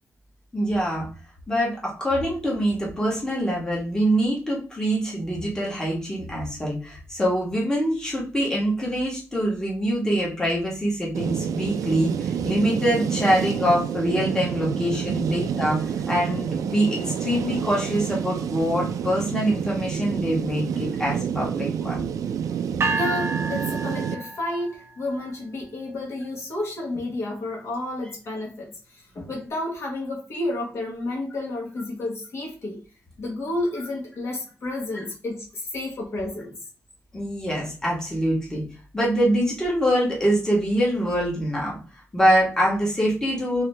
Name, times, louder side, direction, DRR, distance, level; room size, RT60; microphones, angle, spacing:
voice 1, 0.5-1.1 1.5-22.0 37.1-38.6 38.9-41.8 42.1-43.6, equal, 10° left, -5 dB, 1.3 m, -24 dB
sound 1, 11.1-24.2, right 8 dB, 90° right, 0.4 m, -28 dB
sound 2, 22.8-24.9, right 3 dB, 50° right, 0.8 m, -29 dB
voice 2, 22.9-32.8 33.2-36.5, left 2 dB, 55° left, -2 dB, 1.5 m, -31 dB
3.8 x 2.7 x 3.3 m, 0.36 s
wide cardioid pair, 135°, 6 cm